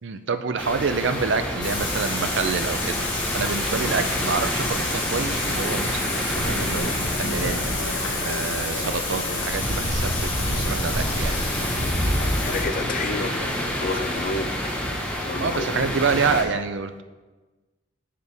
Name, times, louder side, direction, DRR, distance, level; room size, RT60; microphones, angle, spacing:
voice 1, 0.0-7.5 8.2-11.4 15.4-17.0, right 5 dB, 65° right, 9 dB, 0.5 m, -27 dB
sound 1, 0.6-16.4, equal, 5° left, 1.0 m, -29 dB
Thunder / Rain, 1.6-12.6, left 1 dB, 65° left, 2.3 m, -28 dB
sound 2, 6.8-14.0, left 3 dB, 85° left, 0.8 m, -37 dB
voice 2, 12.4-13.3 13.8-14.5 15.3-15.8, left 3 dB, 45° left, 9 dB, 0.4 m, -29 dB
8.3 x 6.7 x 3.4 m, 1.2 s
head